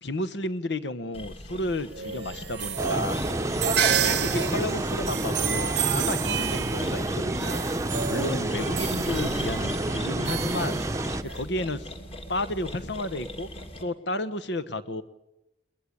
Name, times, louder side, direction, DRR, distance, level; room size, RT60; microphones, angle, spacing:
voice 1, 0.0-3.2 4.0-7.7 8.1-10.8 11.2-11.9 12.3-13.5 13.8-15.0, left 1 dB, 70° left, 14 dB, 1.3 m, -32 dB
sound 1, 1.1-13.8, equal, 30° left, 2.6 m, -39 dB
sound 2, 1.9-11.4, right 9 dB, 65° right, 0.8 m, -31 dB
sound 3, 2.8-11.2, right 1 dB, 15° right, 0.8 m, -29 dB
21.5 x 20.0 x 10.0 m, 0.89 s
head